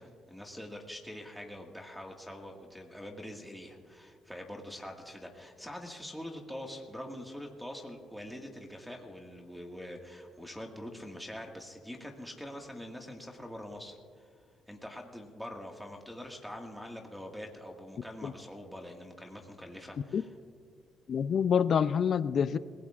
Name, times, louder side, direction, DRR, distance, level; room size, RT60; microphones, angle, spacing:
voice 1, 0.0-14.3 14.7-20.3, left 1 dB, ahead, 0 dB, 1.8 m, -44 dB
voice 2, 21.1-22.6, left 7 dB, 55° left, 15 dB, 0.5 m, -27 dB
28.0 x 17.5 x 2.5 m, 2.2 s
cardioid pair, 90°, 0 cm